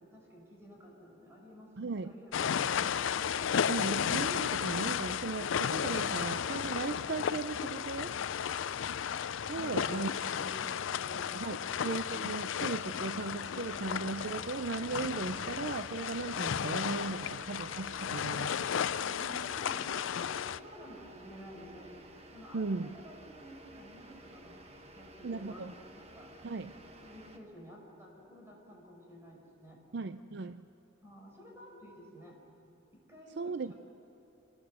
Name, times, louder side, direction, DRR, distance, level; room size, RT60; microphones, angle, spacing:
voice 1, 0.1-1.7 2.0-2.8 9.5-11.9 18.9-26.3 27.0-29.8 31.0-32.4 32.9-33.7, equal, 15° right, -1 dB, 5.4 m, -52 dB
voice 2, 1.8-2.1 3.7-8.2 9.5-10.1 11.3-18.7 22.5-22.9 25.2-25.7 26.4-26.7 29.9-30.7 33.4-33.7, right 4 dB, 60° right, 11 dB, 0.5 m, -37 dB
sound 1, 2.3-20.6, left 8 dB, 90° left, 0.5 m, -34 dB
sound 2, 13.4-27.4, right 1 dB, 35° right, 1.4 m, -54 dB
27.0 x 19.5 x 7.9 m, 2.9 s
head